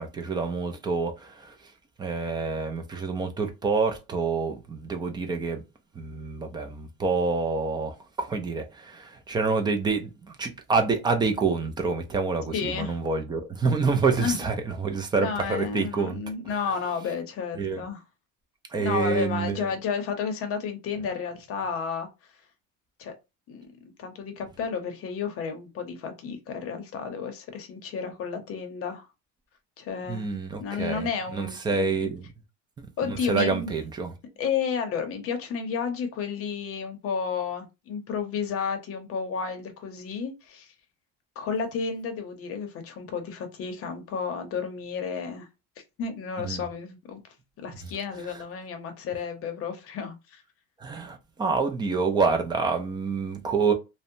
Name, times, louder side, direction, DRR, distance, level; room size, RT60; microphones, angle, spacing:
voice 1, 0.0-1.7 2.0-5.6 6.0-16.6 17.6-17.8 18.7-19.7 30.1-32.3 32.8-34.1 46.4-46.6 47.8-47.9 48.3-48.4 50.8-53.7, right 4 dB, 15° right, 0.3 m, -27 dB
voice 2, 12.5-12.9 14.2-14.4 15.2-18.0 18.8-22.1 23.0-23.1 23.5-23.7 24.0-29.1 29.8-32.1 33.0-33.7 34.4-40.7 41.4-45.5 46.0-47.2 47.6-50.4, left 6 dB, 45° left, 0.7 m, -32 dB
2.7 x 2.1 x 2.6 m
cardioid pair, 155°, 32 cm